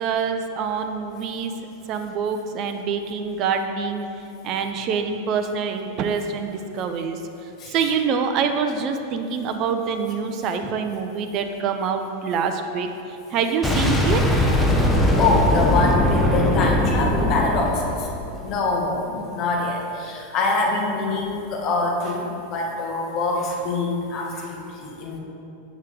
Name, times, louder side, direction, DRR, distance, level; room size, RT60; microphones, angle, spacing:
voice 1, 0.0-1.5 1.9-4.1 4.4-7.2 7.7-12.9 13.3-14.2, right 6 dB, 35° right, 6 dB, 0.5 m, -25 dB
Boom, 13.6-18.5, left 1 dB, 5° left, 0.9 m, -20 dB
voice 2, 15.2-18.1 18.4-25.2, left 3 dB, 35° left, -1 dB, 1.2 m, -24 dB
8.1 x 6.4 x 3.8 m, 2.9 s
figure-of-eight pair, 90°, 0 cm